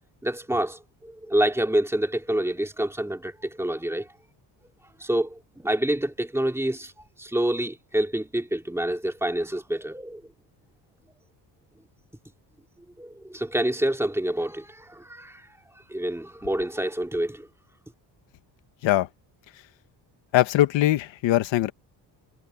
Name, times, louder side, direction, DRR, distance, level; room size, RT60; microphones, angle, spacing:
voice 1, 0.2-4.1 5.0-6.9 7.2-10.2 13.0-15.4 15.9-17.5, right 1 dB, 5° right, 2.6 m, -27 dB
voice 2, 20.3-21.7, left 14 dB, 85° left, 1.4 m, -21 dB
cardioid pair, 140°, 44 cm